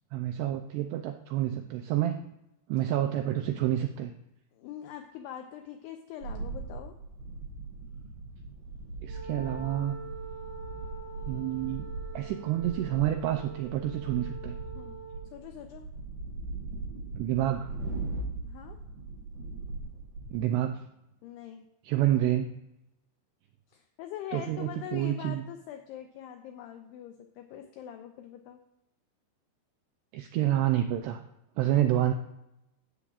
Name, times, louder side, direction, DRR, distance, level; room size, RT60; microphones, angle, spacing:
voice 1, 0.1-2.2 2.7-4.1 9.0-10.0 11.3-14.6 17.1-17.7 20.3-20.8 21.8-22.5 24.3-25.4 30.1-31.2 31.6-32.1, right 12 dB, 85° right, 6 dB, 2.4 m, -28 dB
voice 2, 4.5-7.0 14.8-15.0 15.3-15.9 18.4-18.8 21.2-21.6 23.7-28.6, left 10 dB, 90° left, 5 dB, 2.3 m, -43 dB
sound 1, 6.2-20.4, right 3 dB, 65° right, 5.2 m, -40 dB
Wind instrument woodwind instrument, 9.0-15.3, right 6 dB, 10° right, 1.7 m, -45 dB
13.0 x 8.5 x 2.5 m, 0.85 s
omnidirectional pair, 5.4 m